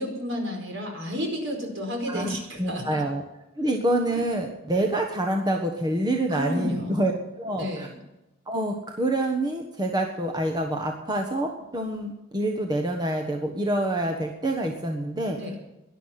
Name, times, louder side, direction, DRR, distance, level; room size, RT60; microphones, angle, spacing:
voice 1, 0.0-3.0 6.3-7.1 7.6-7.9 15.4-15.6, left 1 dB, 55° right, 2 dB, 4.7 m, -31 dB
voice 2, 2.1-3.2 3.6-7.1 7.4-7.9 8.5-15.4, right 1 dB, 20° right, 2 dB, 1.3 m, -27 dB
18.0 x 11.5 x 5.8 m, 0.97 s
head